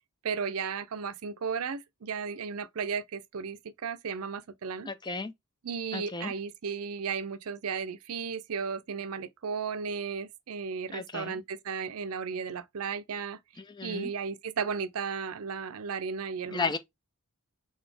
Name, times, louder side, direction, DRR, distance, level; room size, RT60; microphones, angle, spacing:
voice 1, 0.2-4.9 5.6-13.4 13.8-16.8, right 6 dB, 70° right, 0.5 m, -34 dB
voice 2, 4.9-5.3 5.9-6.3 10.9-11.3 13.6-14.1 16.5-16.8, left 4 dB, 20° left, 0.5 m, -34 dB
4.1 x 3.7 x 3.3 m
head